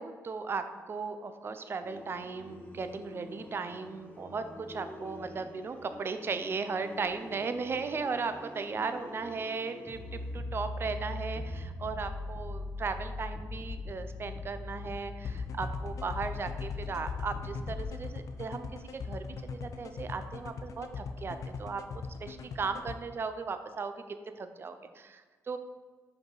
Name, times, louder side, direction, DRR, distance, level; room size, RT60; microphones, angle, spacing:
voice 1, 0.0-18.7 18.9-21.8 22.2-23.9 24.4-25.6, right 4 dB, 40° right, 9 dB, 0.5 m, -36 dB
sound 1, 1.8-10.4, left 2 dB, 25° left, 0.8 m, -48 dB
sound 2, 9.9-17.9, left 2 dB, 15° right, 1.6 m, -39 dB
sound 3, 15.3-23.0, left 5 dB, 65° left, 0.5 m, -39 dB
5.2 x 4.7 x 3.9 m, 1.5 s
cardioid pair, 90°, 6 cm